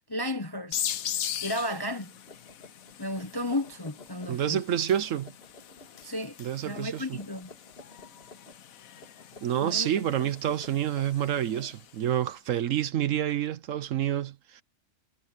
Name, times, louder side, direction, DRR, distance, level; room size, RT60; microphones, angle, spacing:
voice 1, 0.1-0.8 1.4-2.1 3.0-4.6 6.0-6.4 6.6-7.5 9.6-9.9 10.2-10.3, left 1 dB, 25° left, 0.6 m, -33 dB
sound 1, 0.7-12.1, left 10 dB, 70° left, 1.3 m, -40 dB
sound 2, 2.3-4.6 4.8-6.1 6.7-8.6 9.0-12.2, left 3 dB, 40° left, 3.3 m, -52 dB
voice 2, 4.3-5.3 6.4-7.2 9.4-14.6, right 10 dB, 65° right, 1.0 m, -28 dB
omnidirectional pair, 1.5 m